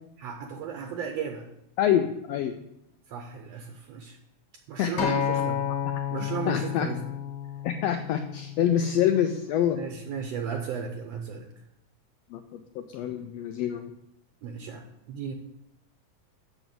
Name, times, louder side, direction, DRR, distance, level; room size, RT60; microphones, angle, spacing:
voice 1, 0.2-1.5 3.1-4.2 4.7-5.6 6.1-7.0 9.8-11.5 14.4-15.4, right 6 dB, 70° right, 5 dB, 1.8 m, -35 dB
voice 2, 1.8-2.6 4.8-5.4 6.5-6.9 7.6-9.8 12.3-13.9, left 10 dB, 80° left, 7 dB, 1.5 m, -26 dB
Acoustic guitar, 5.0-9.2 10.1-10.2, left 8 dB, 60° left, 2.1 m, -31 dB
6.8 x 6.1 x 7.6 m, 0.80 s
omnidirectional pair, 3.4 m